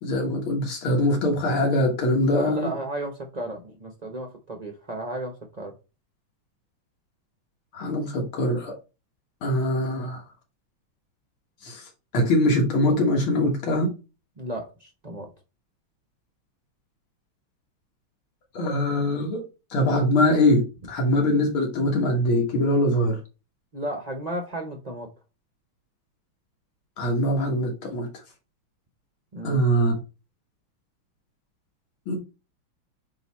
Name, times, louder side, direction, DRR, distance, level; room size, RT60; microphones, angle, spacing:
voice 1, 0.0-2.7 7.7-8.7 9.4-10.2 11.6-11.9 12.1-13.9 18.5-19.4 19.7-23.2 27.0-28.1 29.4-29.9 32.1-32.2, left 1 dB, 80° left, 2.3 m, -23 dB
voice 2, 2.3-5.7 14.4-15.3 23.7-25.1 29.3-29.6, right 1 dB, 60° right, 0.4 m, -34 dB
7.8 x 2.9 x 4.1 m
omnidirectional pair, 2.3 m